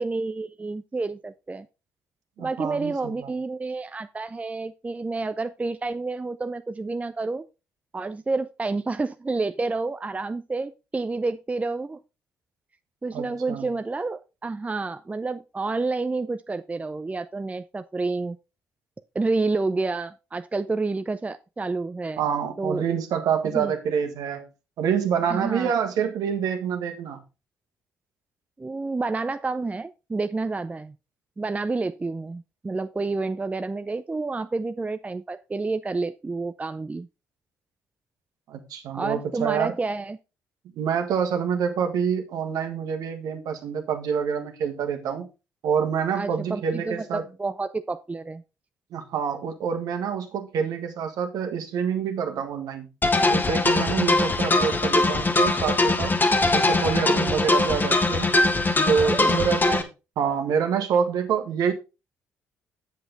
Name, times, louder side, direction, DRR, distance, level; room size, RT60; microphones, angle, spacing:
voice 1, 0.0-1.7 2.4-7.5 7.9-12.0 13.0-18.4 19.1-22.2 22.6-22.8 23.4-23.7 25.3-25.7 28.6-30.9 31.4-37.1 38.9-40.2 46.1-48.4 56.7-56.8 57.1-57.5 59.0-59.5, right 3 dB, 20° right, 0.6 m, -29 dB
voice 2, 2.4-3.3 13.1-13.7 22.2-24.5 24.8-27.2 38.5-39.7 40.8-45.3 45.6-47.2 48.9-52.9 53.3-56.1 56.5-58.3 58.8-59.9 60.2-61.7, right 7 dB, 65° right, 1.6 m, -27 dB
sound 1, 53.0-59.8, left 2 dB, 30° left, 1.5 m, -21 dB
7.9 x 7.4 x 4.0 m
hypercardioid pair, 45°, 7 cm